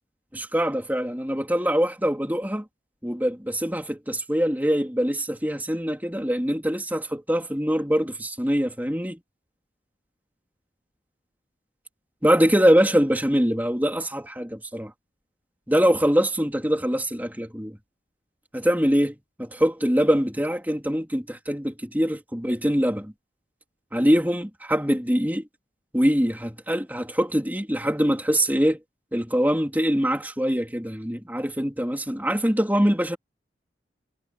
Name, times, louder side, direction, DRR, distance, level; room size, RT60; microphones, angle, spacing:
voice 1, 0.3-2.6 3.0-9.2 12.2-14.9 15.7-17.8 18.5-23.1 23.9-25.4 25.9-28.8 29.1-33.2, equal, 10° right, 3.4 m, -23 dB
head